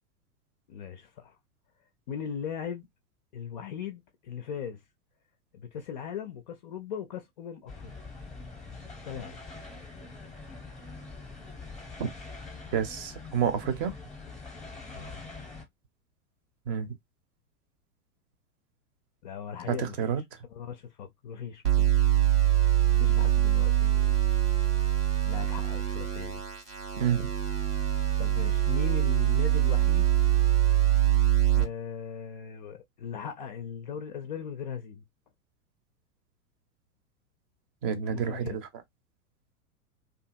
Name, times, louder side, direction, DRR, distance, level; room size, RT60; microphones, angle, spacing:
voice 1, 0.7-1.4 2.1-2.8 3.3-4.8 5.5-7.9 9.0-9.4 14.9-15.2 19.2-20.2 20.5-22.1 22.4-22.6 23.0-24.2 25.2-26.4 28.2-30.1 31.5-35.0 38.1-38.6, left 7 dB, 35° left, 0.4 m, -38 dB
sound 1, 7.7-15.6, left 3 dB, ahead, 0.7 m, -44 dB
voice 2, 12.7-13.9 16.7-17.0 19.7-20.2 27.0-27.3 37.8-38.7, right 8 dB, 40° right, 0.7 m, -29 dB
sound 2, 21.6-31.6, right 12 dB, 85° right, 1.4 m, -24 dB
2.6 x 2.5 x 2.5 m
figure-of-eight pair, 100°, 44 cm